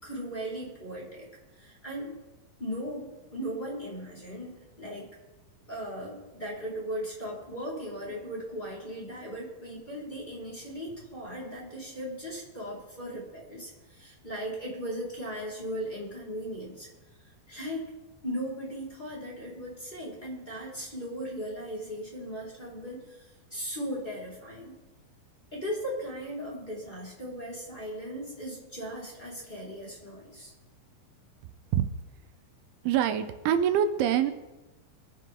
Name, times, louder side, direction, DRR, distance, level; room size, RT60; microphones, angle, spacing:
voice 1, 0.0-1.3 1.5-2.2 2.6-5.1 5.7-16.9 17.5-17.9 18.2-24.7 25.5-30.5, equal, 10° left, -7 dB, 4.9 m, -37 dB
voice 2, 32.8-34.3, right 9 dB, 80° right, 10 dB, 3.2 m, -25 dB
24.0 x 10.5 x 3.9 m, 1.1 s
omnidirectional pair, 5.4 m